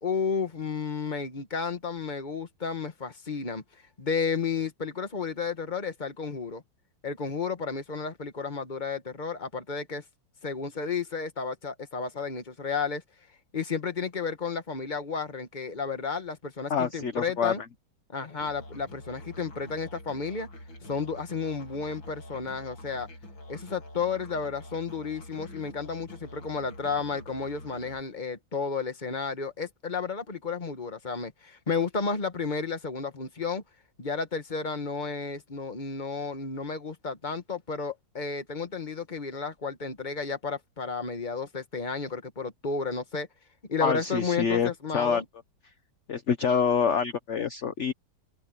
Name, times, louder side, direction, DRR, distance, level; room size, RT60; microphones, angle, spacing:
voice 1, 0.0-3.6 4.0-6.6 7.0-10.0 10.4-13.0 13.5-17.6 18.1-20.5 20.9-23.1 23.5-33.6 34.0-43.3 43.7-45.2, left 5 dB, 25° left, 1.6 m, -32 dB
voice 2, 16.7-17.5 43.8-45.2 46.1-47.9, left 6 dB, 45° left, 1.2 m, -26 dB
Musical instrument, 18.4-28.0, left 1 dB, 85° left, 4.2 m, -46 dB
omnidirectional pair, 2.1 m